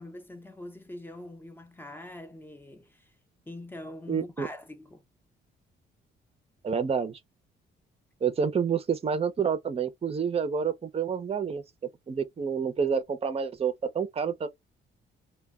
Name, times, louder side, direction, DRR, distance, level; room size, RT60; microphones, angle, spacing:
voice 1, 0.0-3.1 3.5-5.0, left 1 dB, 10° left, 0.7 m, -43 dB
voice 2, 4.1-4.5 6.6-7.2 8.2-11.6 12.1-14.5, right 6 dB, 30° right, 0.6 m, -28 dB
2.2 x 2.2 x 3.5 m
cardioid pair, 90°, 20 cm